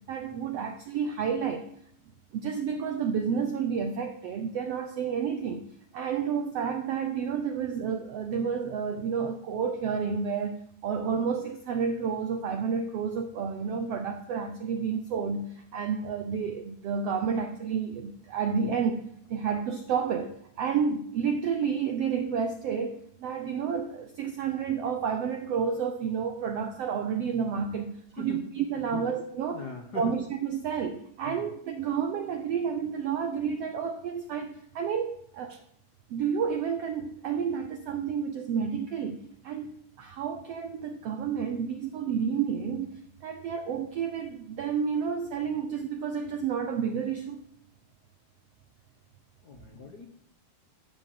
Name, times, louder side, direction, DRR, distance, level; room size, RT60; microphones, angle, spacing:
voice 1, 0.1-1.7 2.3-5.7 5.9-29.6 29.9-35.5 36.1-47.4, right 6 dB, 80° right, 7 dB, 1.4 m, -30 dB
voice 2, 29.5-30.2 31.2-31.5 35.5-35.6 49.4-50.1, left 4 dB, 70° left, 3 dB, 0.9 m, -41 dB
13.5 x 7.0 x 7.7 m, 0.69 s
omnidirectional pair, 4.0 m